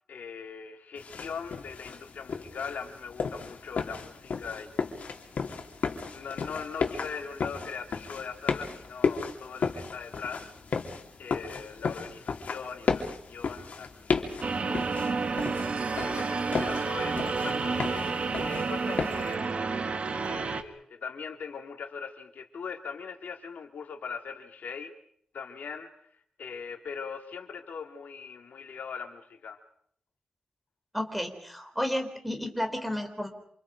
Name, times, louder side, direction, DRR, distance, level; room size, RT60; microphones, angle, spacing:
voice 1, 0.1-5.2 6.1-10.4 11.2-15.2 15.9-19.8 20.2-24.9 25.3-25.9 26.4-29.6, left 6 dB, 80° left, 6 dB, 2.2 m, -41 dB
sound 1, 1.0-19.3, left 5 dB, 60° left, 3.2 m, -34 dB
sound 2, 14.4-20.6, right 4 dB, 50° right, 1.8 m, -30 dB
voice 2, 30.9-33.3, left 1 dB, ahead, 5 dB, 4.0 m, -32 dB
28.0 x 27.5 x 5.1 m, 0.64 s
wide cardioid pair, 140°, 3 cm